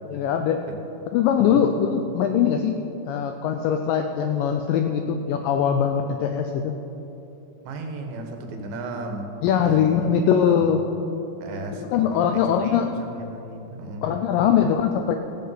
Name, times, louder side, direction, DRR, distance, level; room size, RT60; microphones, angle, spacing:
voice 1, 0.0-0.7 1.1-2.8 3.1-6.8 9.4-10.8 11.9-12.9 14.0-15.2, left 8 dB, 85° left, 5 dB, 2.0 m, -21 dB
voice 2, 1.4-1.9 7.6-10.1 10.4-10.8 11.4-14.1, right 2 dB, 75° right, 4 dB, 2.9 m, -35 dB
15.5 x 7.7 x 5.6 m, 3.0 s
omnidirectional pair, 4.5 m